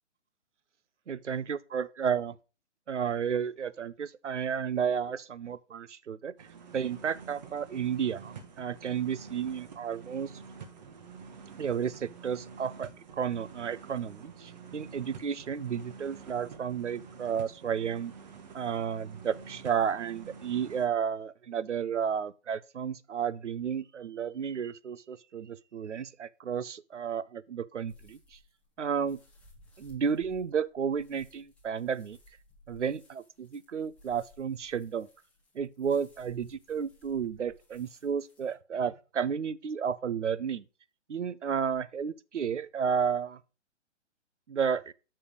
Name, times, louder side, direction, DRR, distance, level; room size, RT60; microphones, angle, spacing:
voice 1, 1.1-2.4 2.9-6.5 6.7-10.3 11.6-18.1 18.5-28.4 28.8-29.2 29.8-32.2 32.7-35.1 35.5-40.6 41.1-43.4 44.5-44.9, right 7 dB, 75° right, 0.6 m, -32 dB
sound 1, 6.4-20.9, right 6 dB, 40° right, 1.0 m, -48 dB
sound 2, 27.9-38.5, left 1 dB, 5° left, 0.7 m, -60 dB
6.8 x 5.5 x 5.0 m
figure-of-eight pair, 130°, 36 cm